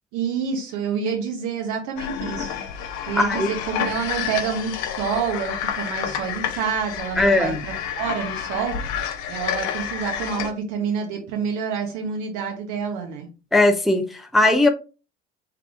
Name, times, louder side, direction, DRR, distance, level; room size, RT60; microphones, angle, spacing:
voice 1, 0.1-2.6 3.1-8.8 9.3-13.3, right 6 dB, 55° right, 1.3 m, -28 dB
sound 1, 2.0-10.5, left 9 dB, 55° left, 0.7 m, -29 dB
voice 2, 3.2-3.5 7.2-7.6 13.5-14.7, left 2 dB, ahead, 0.6 m, -18 dB
3.6 x 3.4 x 3.6 m
figure-of-eight pair, 65°, 35 cm